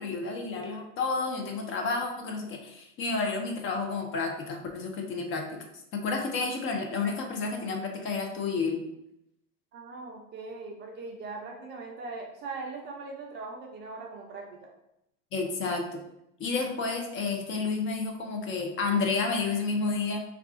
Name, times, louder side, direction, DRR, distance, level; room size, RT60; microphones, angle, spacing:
voice 1, 0.0-5.4 5.9-8.8 15.3-16.0 16.4-20.2, left 4 dB, 30° left, 3 dB, 0.5 m, -30 dB
voice 2, 9.7-14.7, right 3 dB, 25° right, 0 dB, 0.4 m, -40 dB
2.4 x 2.3 x 3.6 m, 0.83 s
hypercardioid pair, 105°, 40 cm